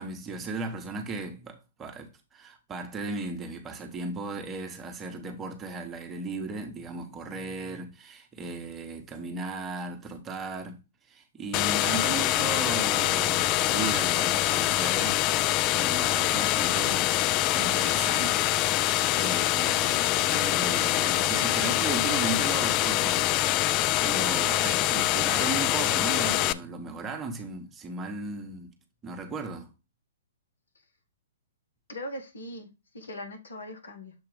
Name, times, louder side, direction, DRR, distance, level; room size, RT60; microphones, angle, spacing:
voice 1, 0.0-10.8 11.1-17.1 17.5-18.5 19.1-28.7 29.0-29.7, right 3 dB, 20° right, 1.2 m, -36 dB
sound 1, 11.5-26.5, left 15 dB, 30° left, 0.3 m, -25 dB
voice 2, 31.9-34.1, left 1 dB, 70° left, 1.6 m, -40 dB
7.1 x 2.8 x 5.0 m
figure-of-eight pair, 120°, 0 cm